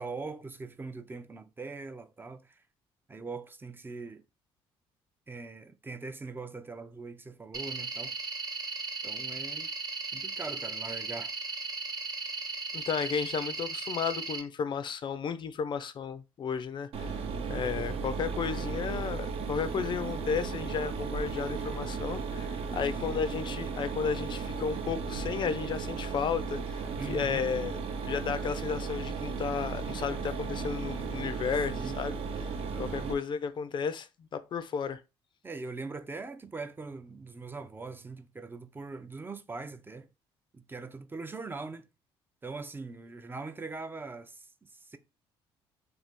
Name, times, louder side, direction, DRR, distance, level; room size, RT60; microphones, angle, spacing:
voice 1, 0.0-2.6 3.1-4.2 5.3-8.1 9.0-9.7 10.1-11.3 22.8-23.2 27.0-27.4 31.7-32.0 32.6-33.2 35.4-40.1 40.5-41.9 42.4-45.0, right 3 dB, 20° right, 0.4 m, -42 dB
sound 1, 7.5-14.4, right 4 dB, 35° right, 1.0 m, -36 dB
voice 2, 12.7-17.2 17.5-32.2 32.8-35.0, left 6 dB, 45° left, 0.4 m, -33 dB
Mechanisms, 16.9-33.1, right 5 dB, 65° right, 0.6 m, -35 dB
2.6 x 2.3 x 3.5 m
cardioid pair, 85°, 11 cm